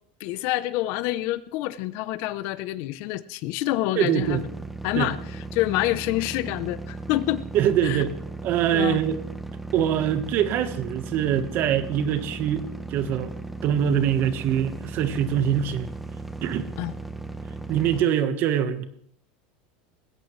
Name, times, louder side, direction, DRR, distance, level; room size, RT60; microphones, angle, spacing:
voice 1, 0.2-4.4 4.8-5.2 5.5-7.4 7.8-8.0 8.7-9.0 16.8-16.9, left 16 dB, 55° left, 15 dB, 0.7 m, -27 dB
voice 2, 3.9-4.4 4.9-5.1 7.5-8.1 8.4-9.2 9.7-13.3 13.6-15.9 16.4-16.7 17.7-18.8, right 9 dB, 45° right, 10 dB, 1.4 m, -24 dB
sound 1, 4.2-18.0, right 3 dB, ahead, 1.0 m, -36 dB
20.0 x 16.5 x 3.3 m, 0.67 s
supercardioid pair, 145°, 5 cm